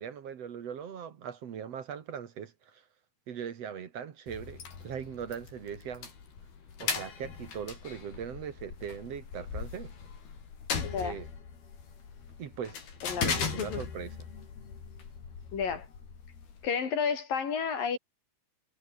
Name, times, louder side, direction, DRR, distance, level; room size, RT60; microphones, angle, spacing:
voice 1, 0.0-2.8 3.3-6.1 6.8-9.9 11.0-11.3 12.4-14.1, right 8 dB, 50° right, 2.2 m, -40 dB
sound 1, 4.3-16.7, left 6 dB, 90° left, 6.6 m, -39 dB
voice 2, 10.8-11.2 13.0-13.3 13.6-13.8 15.5-15.9 16.6-18.0, left 6 dB, 65° left, 5.4 m, -31 dB
omnidirectional pair, 4.3 m